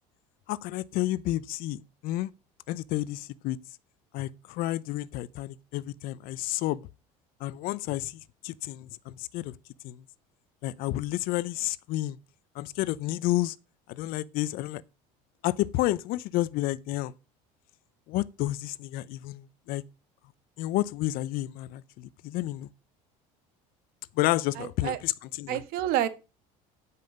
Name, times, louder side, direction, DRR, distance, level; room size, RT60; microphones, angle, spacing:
voice 1, 0.5-2.3 2.7-3.6 4.1-6.8 7.4-9.5 9.8-10.0 10.6-12.2 12.6-13.6 13.9-14.8 15.4-17.1 18.1-19.8 20.6-22.7 24.2-25.1 25.4-25.6, left 16 dB, 60° left, 0.6 m, -30 dB
voice 2, 24.5-25.0 25.5-26.1, right 12 dB, 65° right, 1.3 m, -28 dB
9.7 x 5.6 x 5.2 m
supercardioid pair, 105°, 17 cm